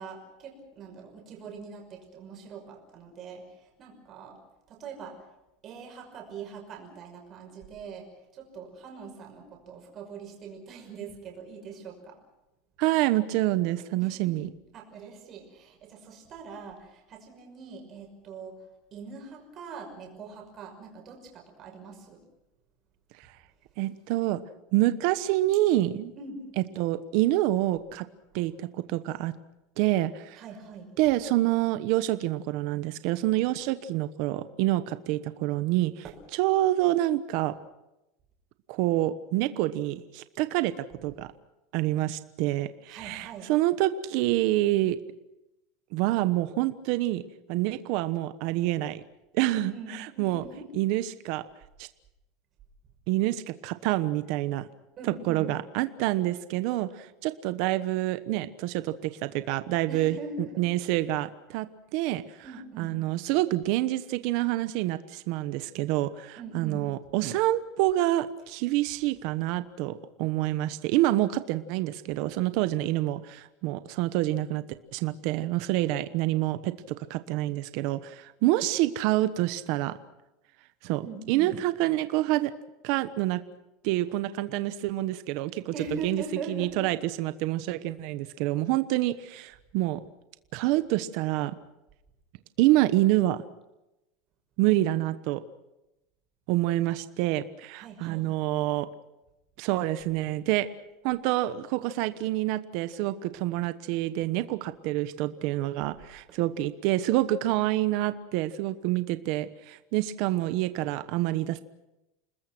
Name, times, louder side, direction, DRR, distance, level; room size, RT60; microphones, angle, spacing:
voice 1, 0.0-4.4 4.7-5.3 5.6-12.2 14.0-14.4 14.7-22.2 26.2-26.5 30.3-30.9 36.0-36.2 42.9-43.5 49.4-50.7 55.0-55.6 59.9-60.7 62.4-63.0 66.4-66.9 81.0-81.5 85.7-86.9 97.8-98.3, right 4 dB, 25° right, 2 dB, 5.9 m, -42 dB
voice 2, 12.8-14.5 23.8-24.4 24.7-26.1 26.8-28.0 28.3-29.3 29.8-30.4 31.0-35.9 36.4-37.5 38.7-40.7 41.0-41.3 41.7-45.0 45.9-47.2 47.5-49.0 49.3-49.7 50.0-50.4 50.7-51.4 51.8-51.9 53.1-54.7 55.3-60.2 60.6-61.7 61.9-62.2 62.8-74.6 74.9-80.0 80.8-82.5 82.8-83.4 83.8-85.7 86.0-86.2 86.5-90.0 90.5-91.6 92.6-93.4 94.6-95.4 96.5-98.9 99.6-100.7 101.0-111.6, right 15 dB, 50° right, 12 dB, 1.1 m, -27 dB
29.0 x 20.5 x 6.1 m, 0.93 s
supercardioid pair, 175°, 0 cm